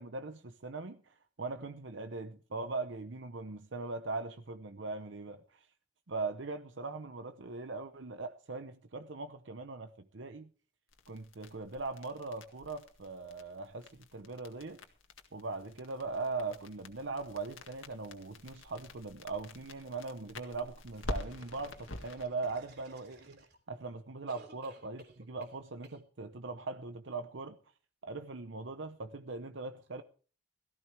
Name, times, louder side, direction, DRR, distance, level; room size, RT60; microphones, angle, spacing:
voice 1, 0.0-5.7 6.1-10.5 11.1-14.8 15.3-27.6 28.0-30.0, right 3 dB, 70° right, 0.8 m, -40 dB
sound 1, 10.9-22.2, left 1 dB, 90° left, 1.9 m, -47 dB
sound 2, 20.9-23.8 24.3-25.6 25.8-26.0, right 2 dB, 55° right, 3.3 m, -57 dB
17.5 x 14.5 x 3.4 m
head